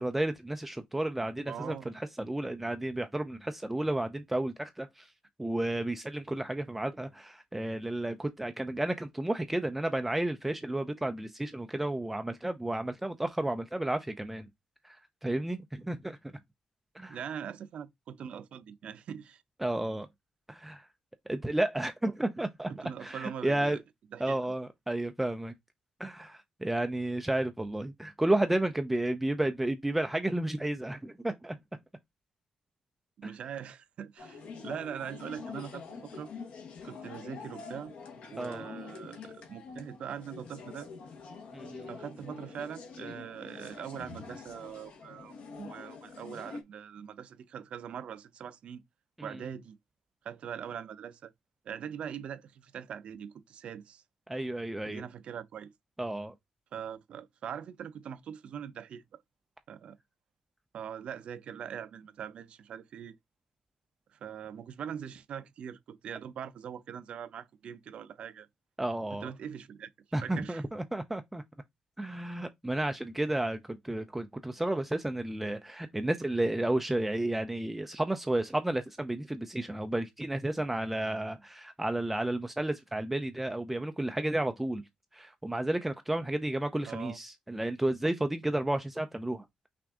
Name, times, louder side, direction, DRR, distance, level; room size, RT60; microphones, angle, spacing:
voice 1, 0.0-5.1 5.4-14.5 14.8-16.2 16.9-17.2 19.6-20.1 20.5-20.9 21.3-23.8 24.2-25.5 26.0-31.6 33.2-33.3 38.4-38.6 41.5-41.9 49.2-49.4 54.3-55.0 56.0-56.3 68.8-69.3 70.1-71.4 72.0-84.8 85.1-89.5, right 1 dB, 5° right, 0.3 m, -32 dB
voice 2, 1.5-1.9 17.1-19.4 22.7-23.8 24.1-24.5 33.2-36.3 36.8-37.9 38.3-40.9 41.9-48.8 49.2-49.8 50.2-51.3 51.6-54.0 54.8-55.7 56.7-59.2 59.7-60.0 60.7-63.1 64.1-68.5 69.1-69.9 70.2-70.6 86.9-87.2, right 8 dB, 60° right, 0.5 m, -42 dB
sound 1, 34.2-46.6, left 5 dB, 70° left, 1.2 m, -46 dB
5.9 x 2.5 x 3.5 m
wide cardioid pair, 160°, 2 cm